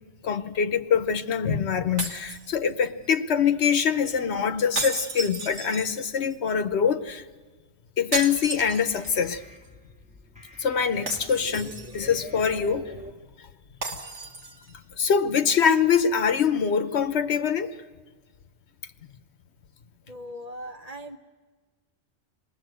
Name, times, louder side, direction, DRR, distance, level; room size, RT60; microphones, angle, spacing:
voice 1, 0.2-7.2 8.0-9.4 10.6-13.0 13.4-13.5 13.9-14.0 15.0-17.7, left 7 dB, 75° left, 9 dB, 1.2 m, -24 dB
sound 1, 2.0-3.1 4.8-6.3 8.1-9.3 9.7-9.8 11.1-12.1 13.8-14.8, right 3 dB, 85° right, 2.0 m, -34 dB
sound 2, 8.2-13.1, equal, 5° right, 1.4 m, -46 dB
voice 2, 20.1-21.2, equal, 35° right, 4 dB, 1.3 m, -39 dB
27.5 x 20.0 x 7.8 m, 1.4 s
omnidirectional pair, 1.2 m